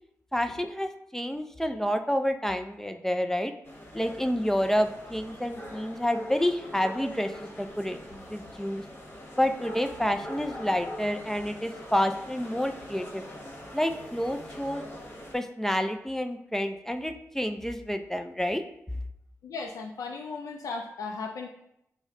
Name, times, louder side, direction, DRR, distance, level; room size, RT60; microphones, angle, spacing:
voice 1, 0.3-3.5 3.9-8.8 9.4-13.2 13.7-14.8 15.3-18.6, equal, 5° left, 7 dB, 0.3 m, -29 dB
sound 1, 3.6-15.4, equal, 40° left, 1.1 m, -43 dB
voice 2, 19.4-21.5, left 4 dB, 80° left, 1 dB, 0.4 m, -36 dB
4.7 x 2.1 x 3.7 m, 0.78 s
cardioid pair, 65°, 6 cm